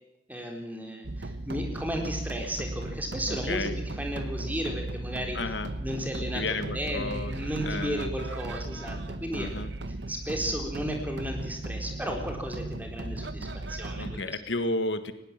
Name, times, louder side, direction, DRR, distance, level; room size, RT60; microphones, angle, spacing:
voice 1, 0.3-5.4 5.8-9.5 9.9-14.3, equal, 10° right, 2 dB, 4.0 m, -34 dB
sound 1, 1.0-14.2, right 2 dB, 70° right, 1.2 m, -36 dB
voice 2, 3.3-3.7 5.3-5.7 6.2-8.1 9.3-9.7 14.0-15.1, left 2 dB, 80° left, 10 dB, 1.6 m, -32 dB
20.5 x 17.5 x 7.4 m, 0.88 s
head